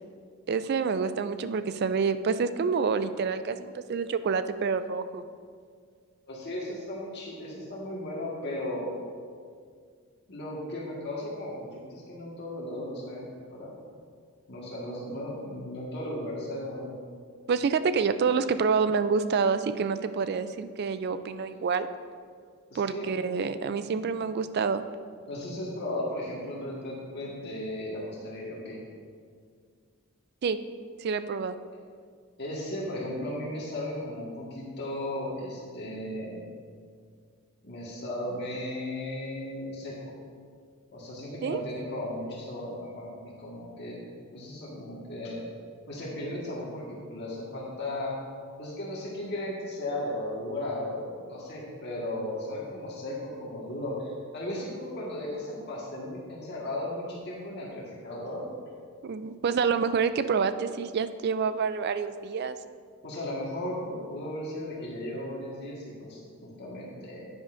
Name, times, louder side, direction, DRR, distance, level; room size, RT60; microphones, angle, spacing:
voice 1, 0.5-5.2 17.5-21.9 22.7-24.8 30.4-30.6 31.0-31.5 41.4-41.6 59.0-62.6, right 5 dB, 45° right, 12 dB, 0.3 m, -27 dB
voice 2, 6.3-8.9 10.3-13.8 14.5-16.9 22.7-23.1 23.9-24.0 25.3-28.8 32.4-36.5 37.6-40.1 40.9-43.1 43.4-45.4 45.9-48.2 48.6-58.5 63.0-67.3, left 1 dB, 50° left, -5 dB, 1.6 m, -36 dB
10.0 x 9.7 x 2.5 m, 2.1 s
head